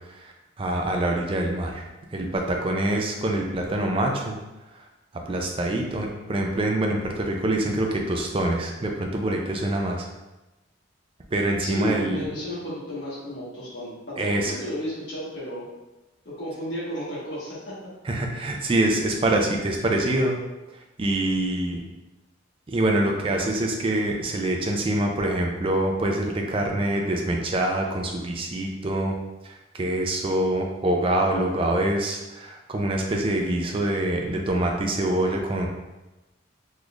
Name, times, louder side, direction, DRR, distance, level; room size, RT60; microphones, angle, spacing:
voice 1, 0.6-1.7 2.1-4.4 5.3-10.0 11.3-12.2 14.2-14.5 18.1-20.3 21.0-21.8 22.7-29.1 29.8-35.7, right 1 dB, 25° right, 1 dB, 0.4 m, -25 dB
voice 2, 11.6-15.6 16.2-17.7, equal, 60° left, -8 dB, 1.5 m, -33 dB
3.9 x 3.1 x 2.4 m, 1.1 s
head